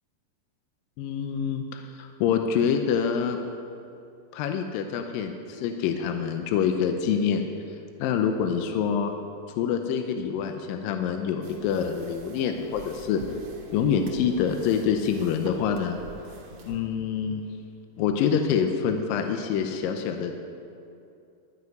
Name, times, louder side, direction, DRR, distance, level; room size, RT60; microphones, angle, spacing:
voice 1, 1.0-3.4 4.3-7.4 8.0-9.1 9.6-13.2 13.7-16.0 16.6-17.4 18.0-20.3, left 7 dB, 80° left, 5 dB, 2.3 m, -26 dB
sound 1, 11.4-16.8, right 4 dB, 55° right, 1.9 m, -43 dB
13.0 x 6.0 x 9.1 m, 2.6 s
omnidirectional pair, 4.3 m